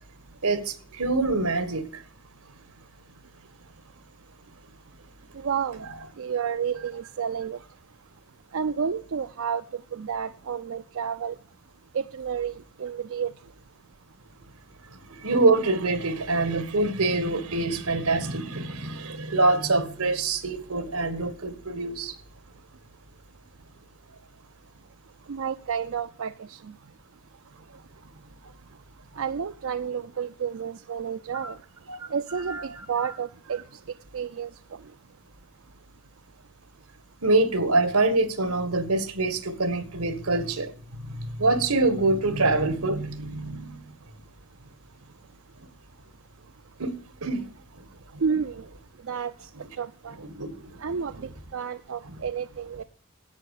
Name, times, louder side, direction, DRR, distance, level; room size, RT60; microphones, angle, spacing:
voice 1, 0.4-1.8 5.8-5.9 15.1-22.1 31.3-31.5 31.9-32.1 32.5-33.1 37.2-40.7 41.4-43.8 46.8-46.9 47.2-47.4 50.2-50.7 52.0-52.1, right 2 dB, 85° right, 1.7 m, -25 dB
voice 2, 5.3-5.8 6.2-7.6 8.5-9.6 9.9-11.4 11.9-13.3 25.3-26.6 29.2-31.6 32.1-33.6 34.1-34.5 48.2-48.6 49.1-49.5 49.8-50.2 50.8-51.1 51.5-52.8, right 7 dB, 65° right, 0.4 m, -30 dB
10.5 x 8.5 x 6.5 m
head